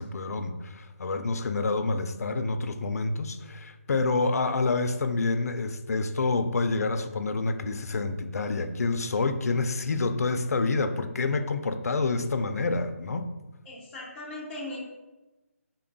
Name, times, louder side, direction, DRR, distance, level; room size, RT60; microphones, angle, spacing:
voice 1, 0.0-13.3, left 3 dB, 90° left, 8 dB, 0.4 m, -28 dB
voice 2, 13.7-14.8, left 1 dB, 5° left, -7 dB, 0.3 m, -38 dB
3.7 x 2.2 x 3.8 m, 1.1 s
hypercardioid pair, 175°, 8 cm